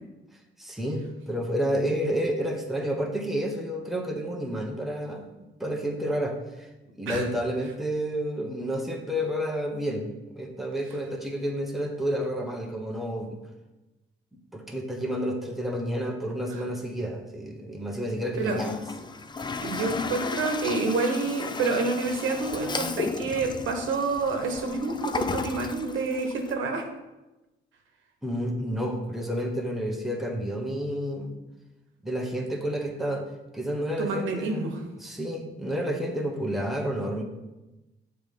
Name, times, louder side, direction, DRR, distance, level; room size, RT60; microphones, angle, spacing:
voice 1, 0.6-5.2 5.6-6.7 6.9-13.4 14.5-18.8 28.2-31.3 32.0-33.3 33.5-34.7 35.0-37.2, equal, ahead, 0 dB, 1.0 m, -30 dB
Toilet flush, 18.3-26.5, left 4 dB, 20° left, 0.4 m, -34 dB
voice 2, 19.6-26.8 34.0-34.8, right 3 dB, 80° right, 3 dB, 1.0 m, -28 dB
7.2 x 3.3 x 5.3 m, 1.0 s
cardioid pair, 90°, 20 cm